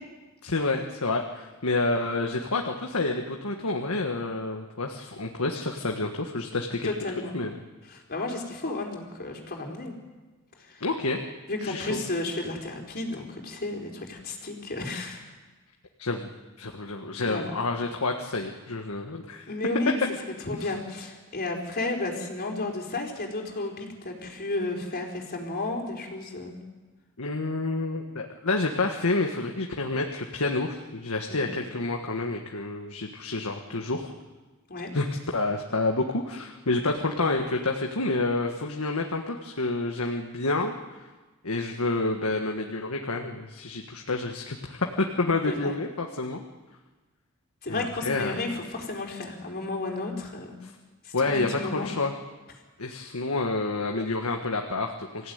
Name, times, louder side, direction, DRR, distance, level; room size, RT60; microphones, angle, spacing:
voice 1, 0.4-6.9 7.3-7.5 10.8-11.2 11.6-12.0 16.0-16.3 16.6-19.5 20.6-20.7 27.2-34.1 34.9-35.1 35.3-40.7 41.4-46.4 47.7-48.4 50.6-50.7 51.1-52.1 52.8-55.3, left 2 dB, 85° left, 2 dB, 1.6 m, -29 dB
voice 2, 6.8-7.4 7.8-9.9 10.6-10.8 11.5-15.2 17.2-17.5 19.5-20.0 20.4-26.6 31.3-31.5 34.7-34.9 45.5-45.7 47.6-50.6 51.0-51.9, left 2 dB, 45° left, 1 dB, 4.4 m, -32 dB
25.5 x 16.0 x 9.5 m, 1.3 s
head